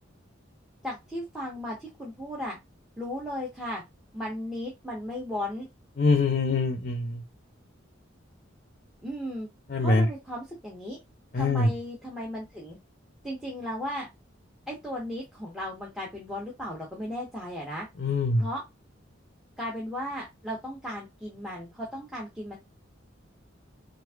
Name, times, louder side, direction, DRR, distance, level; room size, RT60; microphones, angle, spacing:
voice 1, 0.8-2.6 3.0-3.8 4.1-5.7 9.0-9.5 9.8-11.0 11.3-12.8 13.2-14.1 14.7-17.9 18.4-18.6 19.6-22.6, equal, ahead, 1.1 m, -35 dB
voice 2, 6.0-7.2 9.7-10.1 11.3-11.7 18.0-18.5, left 3 dB, 50° left, 0.7 m, -24 dB
6.3 x 2.6 x 2.4 m
head